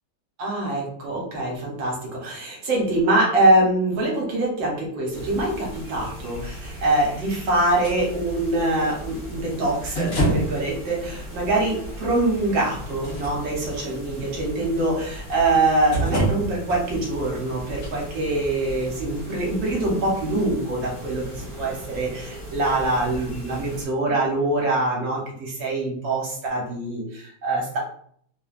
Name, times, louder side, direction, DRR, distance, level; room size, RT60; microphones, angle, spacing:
voice 1, 0.4-27.8, right 2 dB, 75° right, -2 dB, 1.5 m, -24 dB
sound 1, 5.1-23.8, equal, 30° left, 0.5 m, -37 dB
sound 2, 7.8-8.0 9.9-10.6 11.5-11.6 12.9-13.8 15.3-15.5 15.9-16.8 17.8-17.9, right 1 dB, 60° left, 0.9 m, -25 dB
3.5 x 2.2 x 2.4 m, 0.62 s
omnidirectional pair, 2.2 m